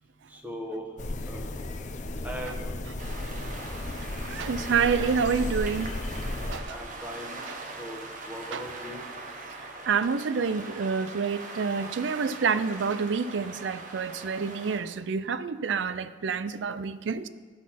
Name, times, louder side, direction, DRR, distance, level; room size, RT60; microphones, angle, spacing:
voice 1, 0.3-0.9 1.3-1.4 2.2-2.7 6.4-7.4 7.8-9.0, equal, 10° right, 1 dB, 1.2 m, -39 dB
sound 1, 1.0-6.6, left 2 dB, 45° left, 0.6 m, -34 dB
sound 2, 3.0-14.8, right 2 dB, 45° right, 1.1 m, -41 dB
voice 2, 4.3-5.9 6.5-6.8 8.5-8.6 9.9-17.3, right 5 dB, 85° right, 14 dB, 0.4 m, -28 dB
12.0 x 6.2 x 5.7 m, 1.5 s
head